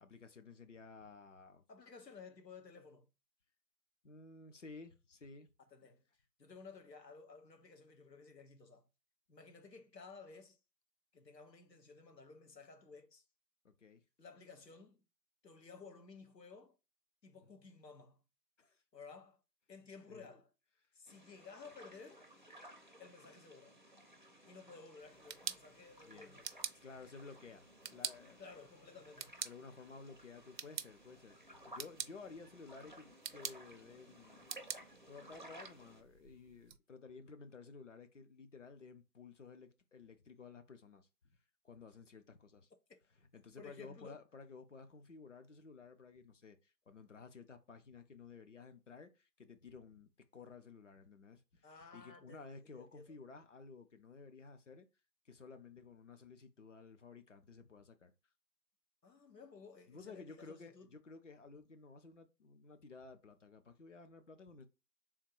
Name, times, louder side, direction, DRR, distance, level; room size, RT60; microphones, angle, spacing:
voice 1, 0.0-1.6 4.0-5.5 13.6-14.0 18.6-18.8 20.1-20.3 26.0-26.4 26.7-28.4 29.4-34.5 35.1-41.4 41.6-42.7 43.3-54.9 55.2-58.1 59.9-64.7, left 4 dB, 50° left, 0.6 m, -54 dB
voice 2, 1.7-3.1 5.7-6.0 6.4-8.9 9.3-10.6 11.1-13.2 14.2-15.0 15.4-16.8 17.2-18.2 18.9-19.4 19.7-20.5 20.9-22.3 23.0-23.8 24.5-26.5 28.4-29.4 43.6-44.2 51.6-53.2 59.0-60.9, left 4 dB, 85° left, 1.0 m, -55 dB
sound 1, 21.1-36.0, right 1 dB, 30° right, 0.5 m, -58 dB
sound 2, 25.0-36.8, right 7 dB, 85° right, 0.6 m, -48 dB
3.6 x 2.6 x 4.5 m
figure-of-eight pair, 145°, 49 cm